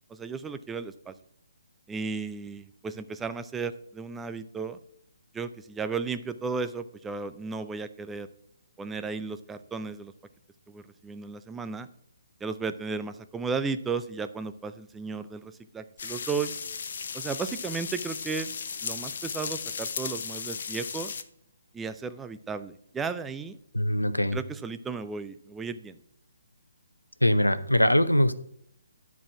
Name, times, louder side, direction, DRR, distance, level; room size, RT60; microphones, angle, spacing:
voice 1, 0.1-1.1 1.9-4.8 5.3-8.3 8.8-10.1 10.7-11.9 12.4-16.5 17.1-18.5 18.8-21.1 21.7-23.6 24.3-26.0, right 5 dB, 10° right, 11 dB, 0.4 m, -34 dB
sound 1, 16.0-21.2, left 6 dB, 45° left, 0.6 m, -36 dB
voice 2, 23.7-24.4 27.2-28.3, left 1 dB, 85° left, 13 dB, 0.7 m, -22 dB
9.9 x 4.7 x 5.9 m, 0.72 s
figure-of-eight pair, 135°, 0 cm